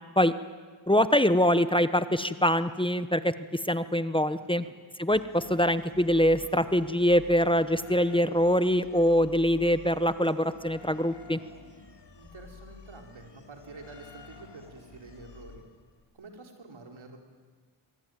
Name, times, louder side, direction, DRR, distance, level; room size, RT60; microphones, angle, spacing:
voice 1, 0.9-4.6 5.0-11.4, equal, 10° left, 12 dB, 1.0 m, -24 dB
voice 2, 4.4-4.7 12.1-15.6 16.1-17.2, right 3 dB, 70° right, 3 dB, 4.2 m, -48 dB
sound 1, 5.1-16.0, left 4 dB, 55° left, 2.8 m, -50 dB
25.0 x 22.5 x 9.3 m, 1.5 s
wide cardioid pair, 85°, 49 cm